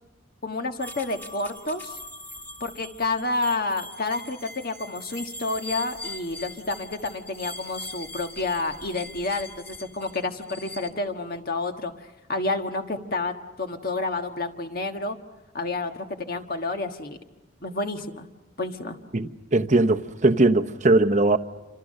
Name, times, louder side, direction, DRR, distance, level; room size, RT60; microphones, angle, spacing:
voice 1, 0.4-2.0 2.6-15.2 15.5-17.2 17.6-18.3 18.6-19.0, left 2 dB, 45° left, 1.5 m, -30 dB
sound 1, 0.8-10.9, left 2 dB, 10° left, 1.6 m, -41 dB
voice 2, 19.1-21.4, right 2 dB, 35° right, 0.9 m, -20 dB
29.0 x 26.0 x 6.6 m
head